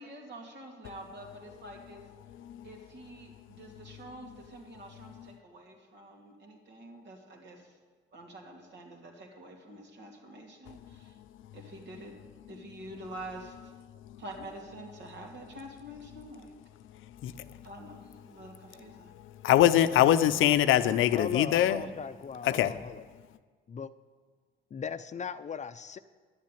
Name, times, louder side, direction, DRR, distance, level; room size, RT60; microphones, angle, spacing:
voice 1, 0.0-2.0 2.6-7.8 8.1-11.2 11.5-12.1 12.5-13.6 14.2-16.5 17.6-19.1, right 1 dB, 65° right, 1 dB, 2.7 m, -47 dB
voice 2, 19.4-21.8 22.4-22.7, left 12 dB, 80° left, 12 dB, 0.6 m, -23 dB
voice 3, 21.1-23.0 23.7-23.9 24.7-26.0, left 6 dB, 35° left, 12 dB, 0.5 m, -37 dB
11.5 x 7.5 x 9.3 m, 1.5 s
cardioid pair, 90°, 20 cm